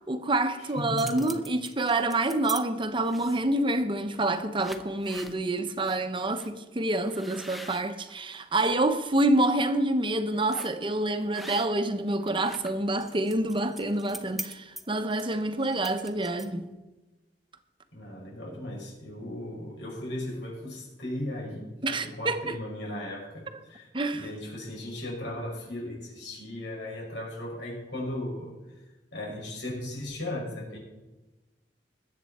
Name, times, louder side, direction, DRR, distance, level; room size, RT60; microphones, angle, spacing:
voice 1, 0.1-16.7 21.8-22.6 23.9-24.3, right 2 dB, 30° right, 0.9 m, -27 dB
voice 2, 0.6-1.3 17.9-28.5 29.1-30.8, left 1 dB, 90° left, 5.8 m, -37 dB
sound 1, 0.7-2.6 3.1-3.5 4.1-4.3 4.6-5.4 5.8-6.0 6.3-6.5 7.1-8.7 9.2-9.5 10.5-10.8 11.3-11.9 12.2-16.7, right 1 dB, ahead, 0.9 m, -43 dB
20.5 x 8.4 x 4.2 m
head